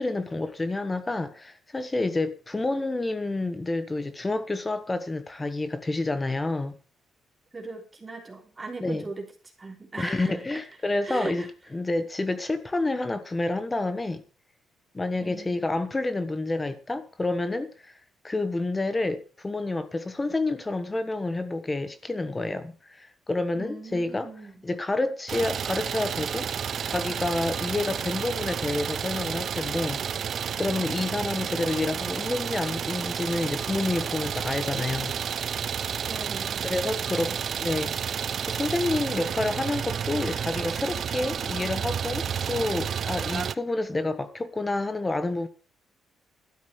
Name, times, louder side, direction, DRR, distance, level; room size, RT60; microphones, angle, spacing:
voice 1, 0.0-6.8 8.8-9.0 10.0-14.2 14.9-18.0 18.2-24.3 24.6-26.5 26.8-30.0 30.3-35.1 36.6-45.5, left 2 dB, 20° left, 1.2 m, -29 dB
voice 2, 7.5-9.3 9.6-10.6 11.0-11.5 15.2-15.6 23.5-24.5 36.0-37.4, right 3 dB, 25° right, 3.5 m, -39 dB
Idling, 25.3-43.5, right 7 dB, 55° right, 0.7 m, -31 dB
12.5 x 8.9 x 6.6 m
cardioid pair, 90°, 0 cm